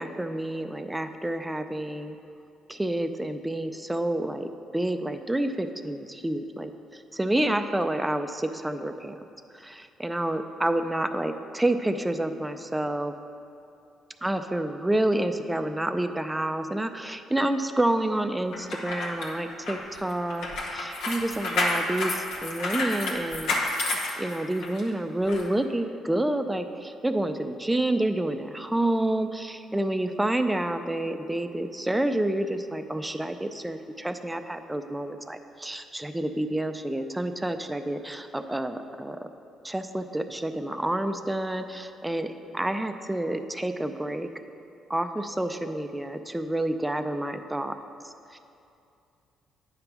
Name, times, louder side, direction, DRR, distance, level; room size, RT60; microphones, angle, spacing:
voice 1, 0.0-2.2 2.7-9.2 9.5-13.1 14.2-23.6 24.2-39.3 39.6-44.3 44.9-47.8 48.0-48.4, right 1 dB, 10° right, 8 dB, 0.4 m, -29 dB
sound 1, 18.5-24.8 25.3-25.4, left 2 dB, 85° left, 1.1 m, -30 dB
9.5 x 3.4 x 5.9 m, 2.6 s
cardioid pair, 85°, 0 cm